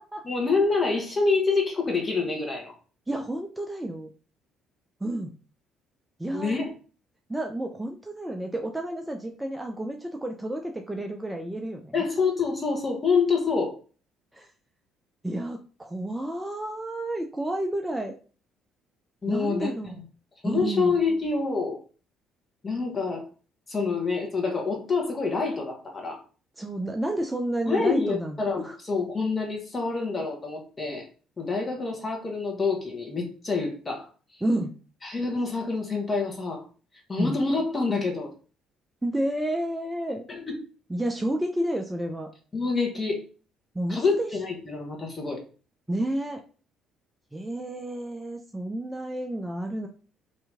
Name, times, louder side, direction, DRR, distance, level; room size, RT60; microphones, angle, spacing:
voice 1, 0.2-2.7 6.3-6.6 11.9-13.7 19.2-20.0 20.4-21.8 22.6-23.3 23.7-26.2 27.6-31.1 31.4-34.1 35.0-36.6 37.1-38.3 40.3-40.6 42.5-43.2 43.9-45.4, left 4 dB, 30° left, 0 dB, 1.2 m, -27 dB
voice 2, 3.1-4.1 5.0-5.3 6.2-6.5 7.3-11.9 14.3-14.5 15.2-18.1 19.3-20.0 20.4-21.0 26.6-28.8 34.4-34.7 37.2-37.4 39.0-40.3 40.9-42.3 43.7-44.3 45.9-46.4 47.3-49.9, right 1 dB, 10° right, 3 dB, 0.5 m, -30 dB
2.8 x 2.6 x 3.4 m, 0.37 s
figure-of-eight pair, 50°, 0 cm